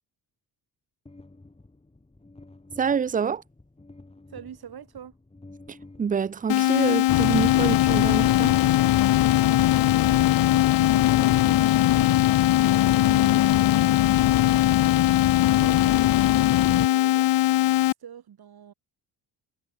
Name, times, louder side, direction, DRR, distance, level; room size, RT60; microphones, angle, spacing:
sound 1, 1.1-7.7, left 2 dB, 15° left, 3.7 m, -51 dB
voice 1, 2.8-3.4 5.7-8.6, right 6 dB, 20° right, 0.4 m, -27 dB
voice 2, 4.3-5.2 9.5-12.2 12.5-16.1 16.7-18.7, right 9 dB, 55° right, 4.0 m, -45 dB
sound 2, 6.5-17.9, left 15 dB, 75° left, 0.9 m, -21 dB
sound 3, 7.1-16.9, left 12 dB, 50° left, 0.8 m, -25 dB
cardioid pair, 115°, 45 cm